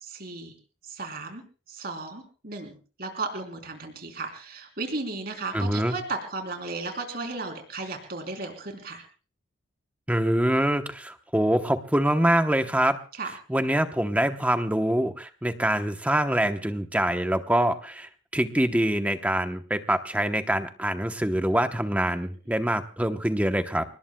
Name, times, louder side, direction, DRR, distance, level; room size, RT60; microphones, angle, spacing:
voice 1, 0.0-0.5 0.8-1.4 1.7-9.0 13.2-13.3, right 3 dB, 50° right, 4 dB, 3.5 m, -35 dB
voice 2, 5.5-6.0 10.1-13.0 13.5-23.8, right 1 dB, 5° right, 7 dB, 0.9 m, -25 dB
30.0 x 19.0 x 2.3 m, 0.37 s
head